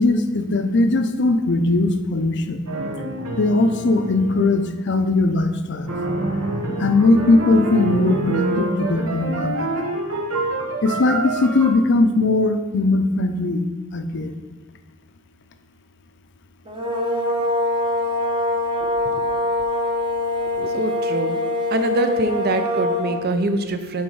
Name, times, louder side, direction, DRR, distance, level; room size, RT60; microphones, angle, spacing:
voice 1, 0.0-2.7 3.4-5.9 6.8-9.7 10.8-13.7 13.9-14.4, left 2 dB, 55° left, 7 dB, 0.6 m, -19 dB
sound 1, 2.7-4.7 5.9-11.7, right 2 dB, 80° right, 1.2 m, -26 dB
sound 2, 16.7-23.3, left 2 dB, 20° right, 0.9 m, -23 dB
voice 2, 20.6-21.4 21.7-24.0, right 2 dB, 45° right, 8 dB, 0.6 m, -24 dB
7.7 x 4.1 x 5.4 m, 1.2 s
head